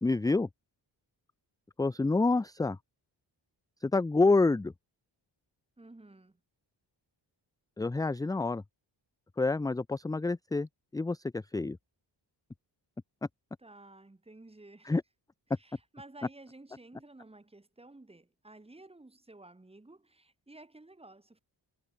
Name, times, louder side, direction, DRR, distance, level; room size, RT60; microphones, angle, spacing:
voice 1, 0.0-0.5 1.8-2.8 3.8-4.7 7.8-8.6 9.4-10.7 10.9-11.8 14.9-15.0, left 3 dB, 10° left, 0.3 m, -27 dB
voice 2, 5.8-6.4 13.6-15.0 15.5-21.4, right 2 dB, 15° right, 2.7 m, -53 dB
wide cardioid pair, 160°, 44 cm